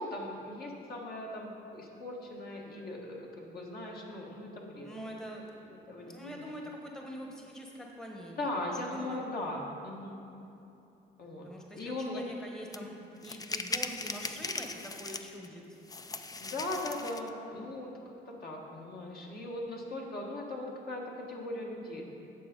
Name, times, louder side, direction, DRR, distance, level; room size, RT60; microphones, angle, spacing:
voice 1, 0.0-4.9 5.9-6.3 8.4-10.2 11.2-12.2 12.8-13.0 16.4-17.9 18.4-21.0 21.3-22.1, left 1 dB, 50° left, -1 dB, 1.6 m, -39 dB
voice 2, 4.8-9.2 11.4-12.9 13.2-15.8, equal, 5° left, 0 dB, 1.0 m, -45 dB
sound 1, 12.7-12.8 13.2-15.5 15.9-17.3, left 3 dB, 20° left, 0.4 m, -38 dB
8.6 x 6.7 x 5.2 m, 2.8 s
cardioid pair, 90°, 20 cm